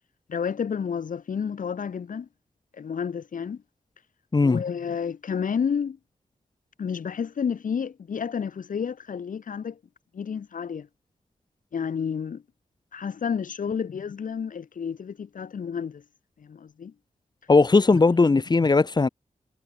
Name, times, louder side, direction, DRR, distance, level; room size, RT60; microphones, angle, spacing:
voice 1, 0.3-2.3 2.7-3.6 4.4-6.0 6.8-9.8 10.1-10.9 11.7-12.4 12.9-16.0 16.4-16.9 17.9-18.0 18.6-18.7, left 7 dB, 70° left, 1.3 m, -30 dB
voice 2, 17.5-19.1, left 3 dB, 30° left, 0.9 m, -18 dB
wide cardioid pair, 90°, 14 cm